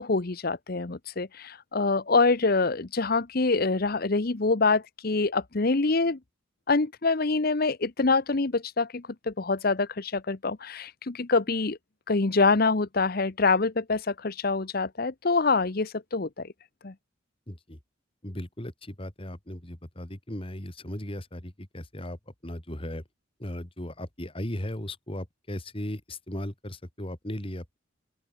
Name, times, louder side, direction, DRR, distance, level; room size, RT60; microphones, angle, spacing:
voice 1, 0.0-6.2 6.7-11.8 12.1-16.5 16.8-16.9, left 3 dB, 50° left, 0.9 m, -25 dB
voice 2, 17.5-17.8 18.2-22.2 22.4-23.0 23.4-27.8, left 1 dB, 25° left, 2.5 m, -37 dB
open air
head